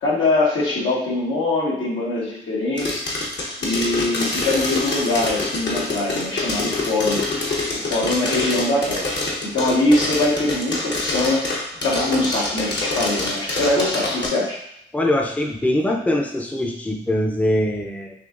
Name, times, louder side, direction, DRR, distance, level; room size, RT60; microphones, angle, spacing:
voice 1, 0.0-3.1 3.6-7.2 7.7-9.1 9.4-11.5 11.8-14.6, left 2 dB, 80° left, -4 dB, 1.3 m, -22 dB
sound 1, 2.8-14.3, left 2 dB, 60° left, 1.0 m, -26 dB
voice 2, 14.9-18.1, left 1 dB, 5° left, 2 dB, 0.6 m, -22 dB
5.8 x 2.7 x 2.5 m, 0.75 s
cardioid pair, 50°, 20 cm